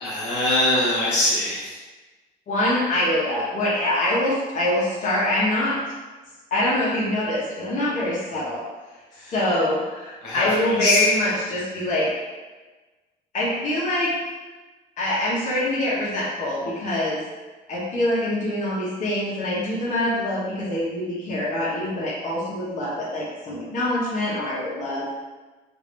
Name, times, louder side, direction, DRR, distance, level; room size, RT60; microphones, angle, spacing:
voice 1, 0.0-1.7 9.2-9.3 10.2-11.0, left 1 dB, 85° left, -6 dB, 1.3 m, -23 dB
voice 2, 2.5-5.8 6.5-8.6 9.3-12.1 13.3-14.1 15.0-17.2 17.7-25.1, left 1 dB, 50° left, -7 dB, 1.1 m, -24 dB
3.6 x 2.5 x 3.2 m, 1.2 s
cardioid pair, 110°, 17 cm